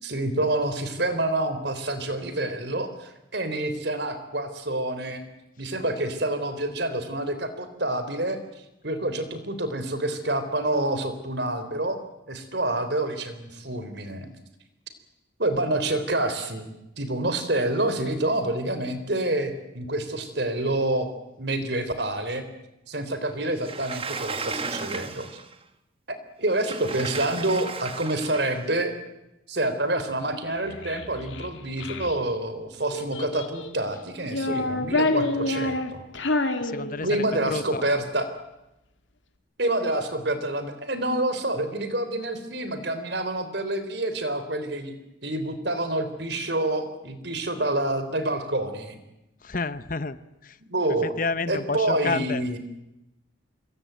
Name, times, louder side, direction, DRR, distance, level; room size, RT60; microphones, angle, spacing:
voice 1, 0.0-5.2 5.6-8.4 8.8-12.0 12.3-14.3 15.4-16.7 17.0-21.1 21.4-22.4 22.9-25.3 26.1-28.9 29.5-36.0 37.0-38.3 39.6-44.9 45.2-49.0 50.6-51.1 51.5-52.6, right 1 dB, 55° right, 10 dB, 3.6 m, -27 dB
Sliding door, 23.6-25.6 26.5-28.7, right 4 dB, 30° right, 1.5 m, -35 dB
Child speech kid speaking, 30.5-32.2 32.9-33.8 34.2-37.4, left 2 dB, 70° left, 2.5 m, -28 dB
voice 2, 36.6-37.8 49.4-50.2 50.4-50.6 51.0-52.4, left 3 dB, 45° left, 14 dB, 1.0 m, -30 dB
26.0 x 22.0 x 9.3 m, 0.92 s
head